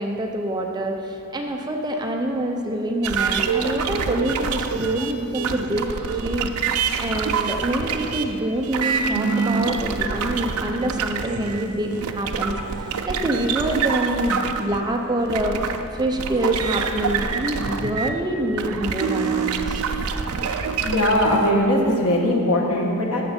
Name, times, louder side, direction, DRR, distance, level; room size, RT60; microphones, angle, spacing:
voice 1, 0.0-5.9 6.2-6.5 7.0-12.6 13.1-19.8, right 1 dB, 20° right, 2 dB, 0.6 m, -26 dB
sound 1, 3.0-18.2 18.6-21.5, right 5 dB, 85° right, 0.5 m, -26 dB
voice 2, 20.8-23.2, left 1 dB, 90° left, 0 dB, 1.4 m, -20 dB
12.0 x 6.8 x 4.4 m, 2.8 s
head